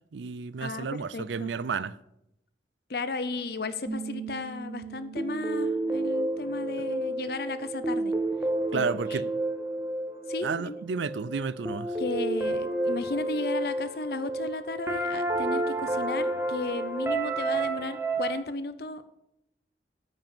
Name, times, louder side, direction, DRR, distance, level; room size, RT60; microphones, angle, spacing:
voice 1, 0.1-1.9 8.7-9.2 10.4-11.9, right 5 dB, 90° right, 0.5 m, -31 dB
voice 2, 1.1-1.5 2.9-8.1 8.7-9.3 10.3-10.8 12.0-19.1, left 3 dB, 60° left, 0.7 m, -34 dB
sound 1, 3.9-18.4, right 2 dB, 15° right, 0.6 m, -31 dB
9.2 x 5.4 x 7.2 m
head